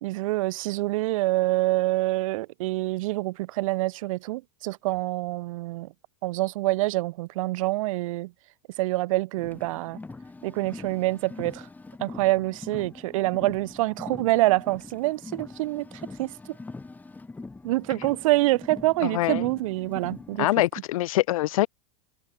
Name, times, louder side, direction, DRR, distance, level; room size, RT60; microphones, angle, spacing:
voice 1, 0.0-5.9 6.2-8.3 8.8-10.0 10.4-11.7 12.0-15.9 16.2-16.3 17.6-20.5, right 19 dB, 70° right, 0.7 m, -26 dB
Car, 9.4-20.5, left 3 dB, 10° left, 1.8 m, -42 dB
voice 2, 19.0-19.4 20.4-21.7, left 16 dB, 70° left, 2.4 m, -24 dB
supercardioid pair, 120°, 18 cm